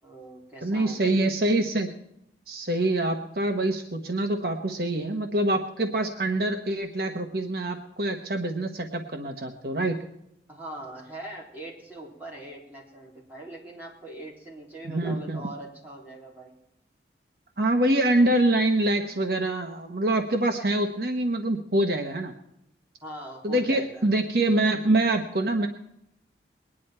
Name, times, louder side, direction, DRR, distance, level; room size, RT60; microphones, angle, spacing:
voice 1, 0.0-1.2 10.5-16.6 23.0-24.1, right 2 dB, 10° right, -4 dB, 3.7 m, -42 dB
voice 2, 0.6-1.9 2.5-10.0 14.8-15.4 17.6-22.3 23.4-25.7, right 1 dB, 55° right, 4 dB, 1.1 m, -25 dB
21.5 x 10.0 x 4.4 m, 0.80 s
head